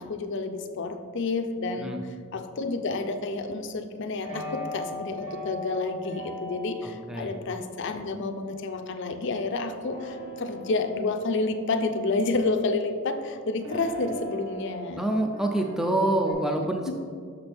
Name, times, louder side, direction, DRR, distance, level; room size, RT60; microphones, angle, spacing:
voice 1, 0.0-15.1 16.5-16.9, left 3 dB, 60° left, 7 dB, 0.5 m, -30 dB
sound 1, 4.3-7.0 9.7-13.1 13.6-16.3, left 1 dB, 80° right, 1.5 m, -39 dB
voice 2, 15.0-16.9, right 1 dB, ahead, 2 dB, 0.4 m, -26 dB
6.1 x 5.8 x 3.4 m, 2.1 s
head